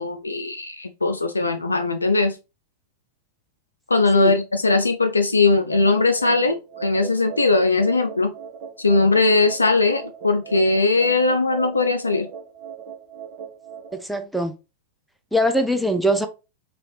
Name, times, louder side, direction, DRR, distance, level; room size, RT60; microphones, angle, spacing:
voice 1, 0.0-2.4 3.9-8.3 8.8-12.3, left 3 dB, 80° left, 0.3 m, -20 dB
sound 1, 5.7-13.9, right 6 dB, 50° right, 0.9 m, -38 dB
voice 2, 13.9-14.5 15.3-16.3, equal, ahead, 0.4 m, -22 dB
3.8 x 2.9 x 3.2 m
figure-of-eight pair, 90°, 0 cm